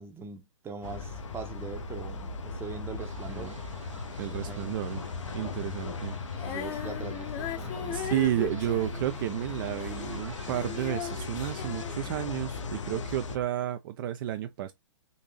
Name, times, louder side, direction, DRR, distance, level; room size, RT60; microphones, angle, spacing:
voice 1, 0.0-3.5 4.3-4.7 6.5-8.1, right 5 dB, 15° right, 0.7 m, -42 dB
sound 1, 0.8-13.4, left 4 dB, 70° left, 0.8 m, -38 dB
sound 2, 3.0-11.8, right 5 dB, 75° right, 0.9 m, -52 dB
voice 2, 4.2-5.0 5.3-6.1 7.9-14.7, right 12 dB, 45° right, 0.4 m, -32 dB
Female singing, 6.3-12.7 13.4-13.5, left 9 dB, 35° left, 0.8 m, -39 dB
3.9 x 2.7 x 2.8 m
hypercardioid pair, 120°, 16 cm